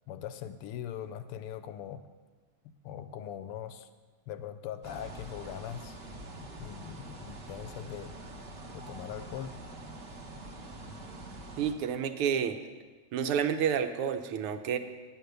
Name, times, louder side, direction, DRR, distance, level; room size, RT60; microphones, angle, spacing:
voice 1, 0.1-2.0 2.8-3.9 4.3-6.0 6.4-8.1 8.7-9.5, left 9 dB, 90° left, 11 dB, 1.6 m, -41 dB
sound 1, 4.8-11.7, right 1 dB, 40° right, 0.9 m, -45 dB
voice 2, 11.6-12.6 13.1-14.8, right 8 dB, 80° right, 8 dB, 1.6 m, -29 dB
9.2 x 8.8 x 6.7 m, 1.4 s
omnidirectional pair, 2.4 m